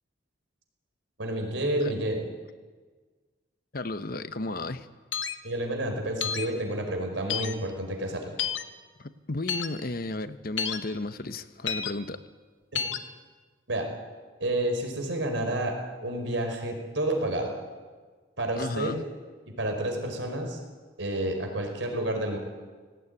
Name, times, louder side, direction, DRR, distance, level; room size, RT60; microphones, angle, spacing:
voice 1, 1.2-2.2 5.4-8.3 13.7-13.9 14.4-17.6 18.4-19.0 19.6-20.6 21.0-22.4, right 1 dB, 85° right, 3 dB, 5.1 m, -30 dB
voice 2, 3.7-4.9 9.0-12.2 18.6-19.0, left 2 dB, 50° left, 11 dB, 0.9 m, -33 dB
sound 1, 5.1-5.3 6.2-6.5 7.3-7.5 8.4-8.6 9.5-9.7 10.6-10.8 11.7-11.9 12.7-13.0, left 7 dB, 90° left, 1.3 m, -29 dB
18.5 x 17.5 x 9.6 m, 1.4 s
head